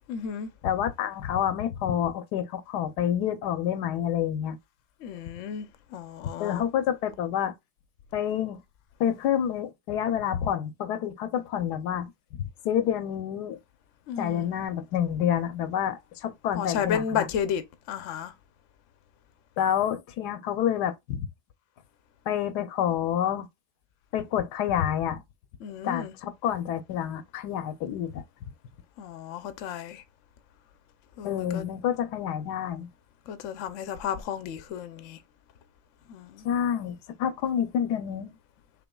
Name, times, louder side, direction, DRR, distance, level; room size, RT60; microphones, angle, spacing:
voice 1, 0.1-0.5 5.0-5.7 5.9-6.6 14.1-14.5 16.5-17.6 17.9-18.3 25.6-26.1 29.0-30.0 31.2-31.6 33.3-35.2 36.1-36.5, left 8 dB, 60° left, 0.9 m, -32 dB
voice 2, 0.6-4.6 6.4-7.5 8.1-8.6 9.0-13.6 14.2-17.3 19.6-21.3 22.3-23.5 24.1-25.2 25.8-28.2 31.2-32.9 36.4-38.3, left 9 dB, 80° left, 1.2 m, -28 dB
6.0 x 3.5 x 2.2 m
omnidirectional pair, 1.7 m